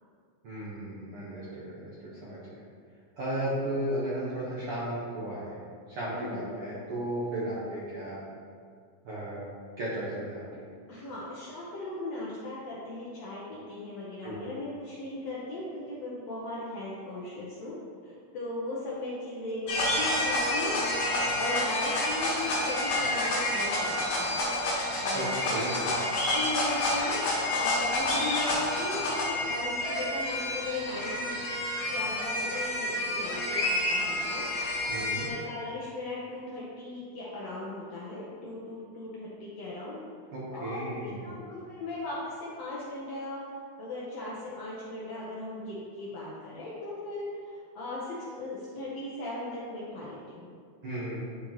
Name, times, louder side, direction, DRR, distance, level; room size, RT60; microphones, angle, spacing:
voice 1, 0.4-1.9 2.2-2.4 3.2-5.6 5.9-8.2 9.0-9.4 9.8-10.4 14.2-14.4 25.1-25.9 34.9-35.3 40.3-41.3 50.8-51.2, right 1 dB, 60° right, -9 dB, 1.6 m, -34 dB
voice 2, 6.1-6.5 7.3-7.4 10.9-17.7 18.0-20.8 21.3-24.4 24.6-26.0 26.3-27.2 27.6-31.4 31.9-34.4 35.0-40.0 40.5-43.4 43.8-47.3 47.8-50.5, left 2 dB, 70° left, -7 dB, 1.7 m, -38 dB
sound 1, 19.7-35.3, left 1 dB, 85° left, 3.5 m, -29 dB
11.5 x 4.4 x 3.0 m, 2.2 s
omnidirectional pair, 4.0 m